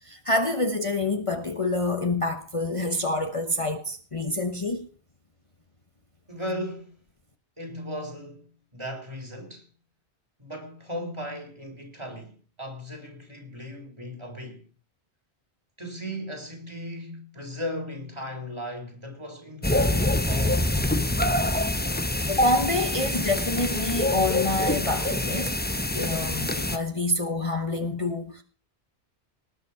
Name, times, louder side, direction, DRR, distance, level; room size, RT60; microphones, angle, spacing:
voice 1, 0.0-4.9 22.3-25.5 25.9-28.4, left 2 dB, 30° left, 1.2 m, -27 dB
voice 2, 6.3-7.0 7.6-9.7 10.4-14.7 15.8-20.8, equal, 25° right, 4.0 m, -37 dB
sound 1, 19.6-26.8, left 1 dB, 10° left, 0.8 m, -26 dB
19.0 x 8.3 x 5.8 m
omnidirectional pair, 1.1 m